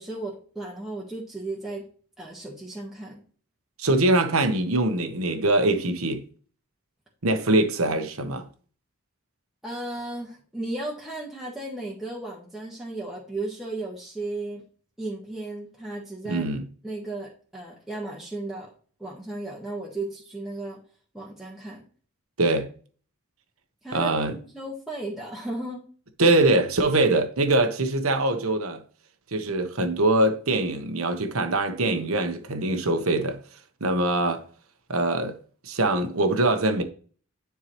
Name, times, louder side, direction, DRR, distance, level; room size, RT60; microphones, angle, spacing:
voice 1, 0.0-1.9 2.2-3.2 9.6-14.6 15.0-16.4 16.8-18.7 19.0-20.8 21.1-21.8 23.8-25.8, right 2 dB, ahead, 1.4 m, -35 dB
voice 2, 3.8-6.2 7.2-8.5 16.2-16.6 22.4-22.7 23.9-24.3 26.2-28.8 29.3-33.4 33.8-34.4 34.9-35.4 35.6-36.8, right 2 dB, 80° right, 1.1 m, -23 dB
10.5 x 4.6 x 3.1 m
head